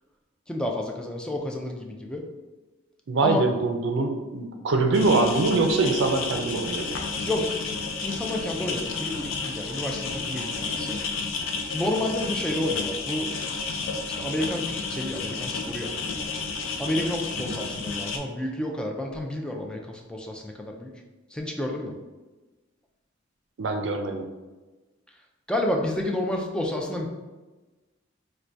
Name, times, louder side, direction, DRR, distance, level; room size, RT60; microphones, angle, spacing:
voice 1, 0.5-2.3 3.2-3.5 7.2-7.5 8.0-11.0 11.7-13.3 14.2-15.9 16.8-20.9 21.3-21.9 25.5-27.1, left 1 dB, 5° left, 1 dB, 0.3 m, -30 dB
voice 2, 3.1-6.8 17.5-17.6 23.6-24.3, right 3 dB, 65° right, 5 dB, 0.4 m, -23 dB
sound 1, 4.9-18.2, left 4 dB, 80° left, 0.4 m, -31 dB
4.4 x 2.2 x 2.6 m, 1.2 s
head